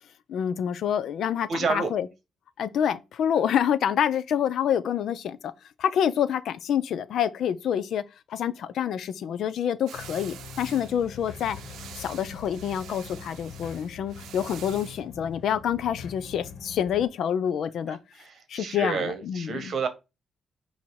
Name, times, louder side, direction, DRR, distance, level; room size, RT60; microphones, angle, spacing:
voice 1, 0.3-2.1 2.6-5.5 5.8-8.0 8.3-11.6 11.9-18.0 18.5-19.7, left 9 dB, 65° left, 0.6 m, -27 dB
voice 2, 1.5-1.9 17.9-19.9, right 5 dB, 50° right, 1.3 m, -30 dB
sound 1, 9.9-17.1, left 6 dB, 85° left, 1.5 m, -43 dB
sound 2, 9.9-15.0, right 9 dB, 80° right, 0.6 m, -46 dB
8.5 x 2.9 x 4.7 m
cardioid pair, 140°, 0 cm